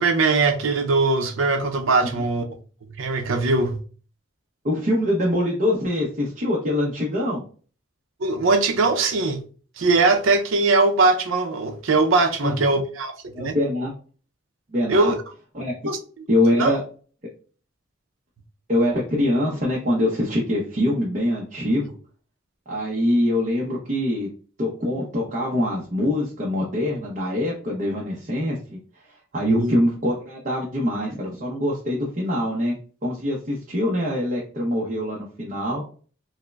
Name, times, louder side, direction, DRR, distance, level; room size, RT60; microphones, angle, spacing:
voice 1, 0.0-2.5 3.0-3.8 8.2-9.4 9.8-13.6 14.9-15.2 15.8-16.0 16.6-16.8 29.5-29.7, right 3 dB, 80° right, 0.5 m, -21 dB
voice 2, 4.6-7.4 12.4-12.5 13.3-13.9 14.7-15.1 15.5-15.7 16.3-16.8 18.7-22.0 22.7-24.3 24.6-28.8 29.3-32.8 33.0-35.8, left 1 dB, 40° right, 0.7 m, -24 dB
4.7 x 2.1 x 2.2 m
head